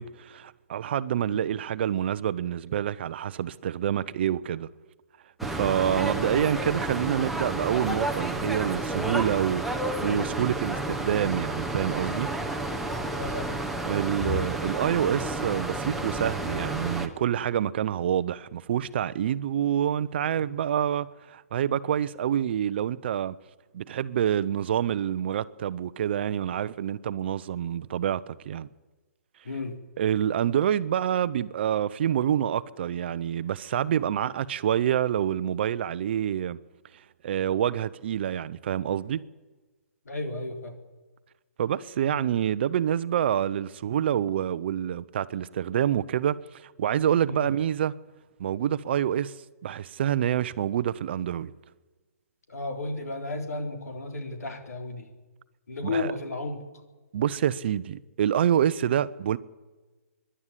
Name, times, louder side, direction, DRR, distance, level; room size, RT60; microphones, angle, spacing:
voice 1, 0.0-4.7 5.4-9.6 10.0-12.3 13.9-23.4 23.7-28.7 30.0-36.6 37.2-39.2 41.6-47.9 48.4-49.3 49.6-51.5 55.8-56.1 57.1-59.4, right 10 dB, 45° right, 0.7 m, -27 dB
sound 1, 5.4-17.1, right 2 dB, ahead, 1.0 m, -31 dB
voice 2, 13.1-13.6 20.2-20.5 29.4-29.7 40.1-40.7 47.3-47.4 52.5-55.1 55.7-56.6, left 2 dB, 85° left, 3.9 m, -33 dB
23.5 x 11.5 x 10.0 m
hypercardioid pair, 160°, 8 cm